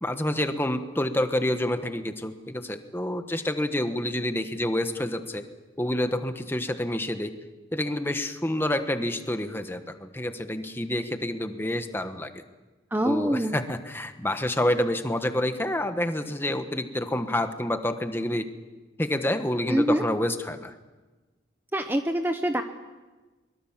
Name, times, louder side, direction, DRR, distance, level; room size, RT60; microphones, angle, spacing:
voice 1, 0.0-5.4 5.8-7.3 7.7-12.3 13.0-18.5 19.0-20.7, left 1 dB, 10° left, 8 dB, 1.2 m, -28 dB
voice 2, 12.9-13.6 19.7-20.0 21.7-22.6, right 1 dB, 10° right, 6 dB, 0.8 m, -25 dB
23.5 x 22.0 x 7.4 m, 1.2 s
head